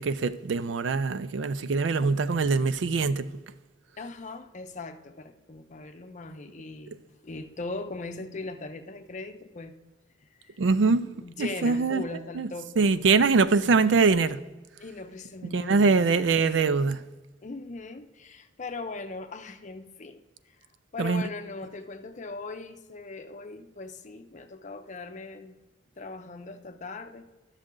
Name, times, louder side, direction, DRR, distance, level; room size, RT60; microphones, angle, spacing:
voice 1, 0.0-3.3 10.6-11.1 11.4-12.0 12.4-12.5 12.8-14.4 15.5-17.0 21.0-21.2, right 4 dB, 80° right, 0.4 m, -23 dB
voice 2, 4.0-7.0 7.2-9.7 10.2-10.6 11.1-12.7 14.8-16.3 17.4-20.2 20.9-25.6 26.0-27.3, left 3 dB, 40° left, 0.7 m, -39 dB
11.5 x 6.5 x 3.7 m
head